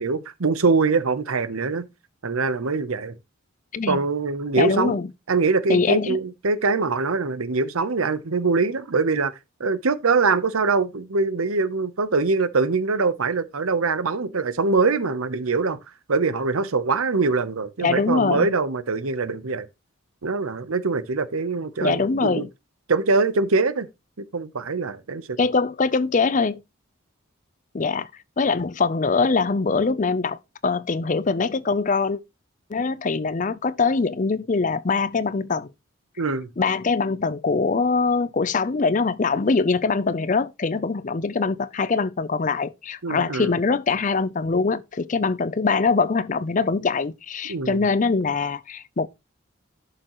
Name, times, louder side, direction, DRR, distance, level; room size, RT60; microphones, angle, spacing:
voice 1, 0.0-1.9 2.2-3.1 3.9-5.0 5.3-9.3 9.6-15.8 16.1-19.7 20.2-22.5 22.9-23.9 24.3-25.4 36.2-36.5 43.0-43.5 47.5-47.8, right 4 dB, 85° right, 0.8 m, -23 dB
voice 2, 4.5-5.1 5.7-6.2 17.8-18.5 21.8-22.5 25.4-26.6 27.7-28.1 28.4-32.2 32.7-35.7 36.6-49.1, left 4 dB, 35° left, 0.5 m, -23 dB
11.5 x 6.7 x 3.0 m
head